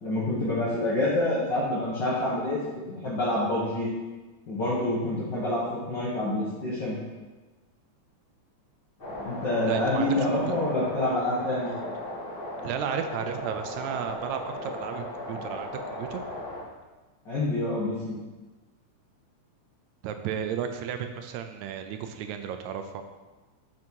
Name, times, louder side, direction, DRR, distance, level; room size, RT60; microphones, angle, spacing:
voice 1, 0.0-2.6 2.9-3.9 4.5-7.0 9.2-11.7 17.2-18.2, left 1 dB, 45° left, -8 dB, 1.7 m, -27 dB
sound 1, 9.0-16.6, left 1 dB, 60° left, 0.5 m, -36 dB
voice 2, 9.7-10.6 12.6-16.2 20.0-23.0, right 8 dB, 80° right, 7 dB, 1.8 m, -33 dB
6.1 x 6.0 x 4.6 m, 1.2 s
omnidirectional pair, 3.5 m